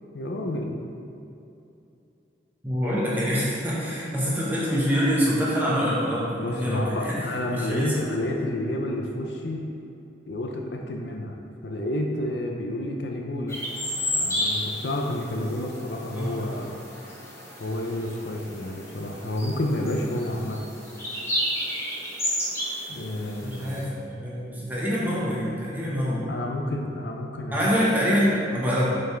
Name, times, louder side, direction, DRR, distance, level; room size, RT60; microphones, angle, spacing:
voice 1, 0.1-0.8 6.3-9.7 10.3-13.6 14.1-16.8 17.6-20.7 22.9-23.9 26.3-27.6, left 1 dB, 65° left, 1 dB, 0.6 m, -30 dB
voice 2, 2.6-8.0 16.1-16.5 23.4-26.3 27.5-28.8, equal, 10° right, -7 dB, 1.5 m, -25 dB
sound 1, 13.5-23.8, left 1 dB, 15° left, 1.3 m, -32 dB
7.5 x 5.5 x 3.5 m, 2.8 s
head